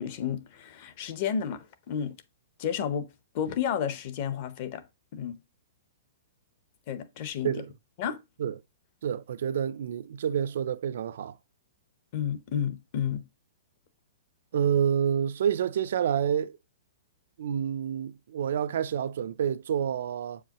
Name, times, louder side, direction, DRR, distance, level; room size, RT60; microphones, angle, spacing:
voice 1, 0.0-2.2 2.6-3.1 3.3-4.8 5.1-5.4 6.9-7.5 8.0-8.2 12.1-13.3, left 8 dB, 30° left, 0.8 m, -31 dB
voice 2, 9.0-11.3 14.5-16.6 17.4-20.4, right 8 dB, 55° right, 0.4 m, -28 dB
7.9 x 4.8 x 2.9 m
hypercardioid pair, 180°, 0 cm